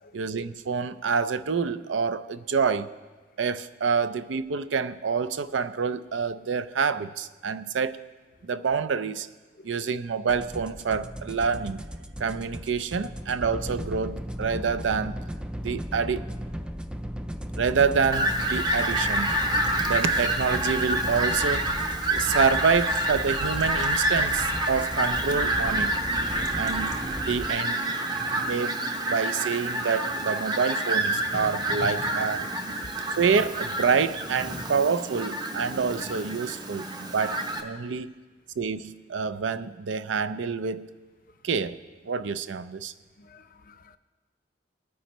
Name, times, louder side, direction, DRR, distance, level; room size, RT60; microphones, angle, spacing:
voice 1, 0.1-2.9 3.4-8.0 8.4-9.3 9.6-11.9 12.2-15.2 15.6-16.3 17.6-19.3 19.8-21.7 22.1-25.9 26.6-27.8 28.4-28.7 29.1-32.5 33.2-38.1 38.6-40.9 41.4-41.8 42.0-42.9, right 5 dB, 80° right, 0.5 m, -27 dB
sound 1, 10.3-27.5, equal, 5° right, 0.3 m, -36 dB
Fowl, 18.1-37.6, right 1 dB, 25° right, 0.9 m, -28 dB
sound 2, 24.9-32.1, right 2 dB, 50° right, 0.9 m, -43 dB
voice 2, 43.2-44.0, left 3 dB, 50° left, 0.5 m, -53 dB
19.5 x 9.4 x 3.1 m
head